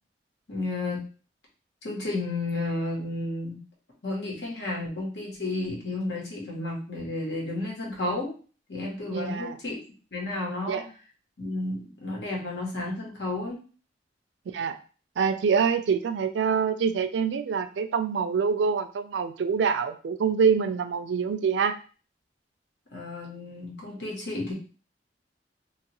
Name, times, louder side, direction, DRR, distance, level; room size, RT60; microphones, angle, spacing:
voice 1, 0.5-1.0 1.8-3.6 4.0-8.3 8.7-9.8 10.1-10.8 11.4-13.6 22.9-24.5, left 2 dB, 85° left, -2 dB, 1.2 m, -32 dB
voice 2, 9.1-9.6 10.7-10.8 14.5-14.8 15.2-21.8, right 6 dB, 85° right, 9 dB, 0.3 m, -25 dB
2.9 x 2.4 x 2.9 m, 0.37 s
head